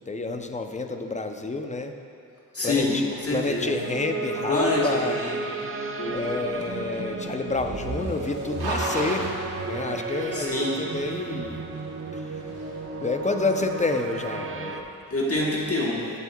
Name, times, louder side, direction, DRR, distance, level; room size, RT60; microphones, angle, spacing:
voice 1, 0.1-2.0 2.6-3.0 3.3-5.2 6.1-9.3 9.6-11.6 12.1-12.4 13.0-14.9, left 3 dB, 20° left, 5 dB, 0.5 m, -29 dB
voice 2, 2.5-3.7 4.5-5.6 6.0-6.4 10.3-10.8 15.1-16.1, left 2 dB, 40° left, -4 dB, 1.3 m, -26 dB
sound 1, 3.6-14.8, right 3 dB, 35° right, 0.5 m, -33 dB
sound 2, 6.1-15.3, right 2 dB, 75° right, 1.4 m, -36 dB
15.0 x 8.2 x 2.2 m, 2.5 s
wide cardioid pair, 110°, 38 cm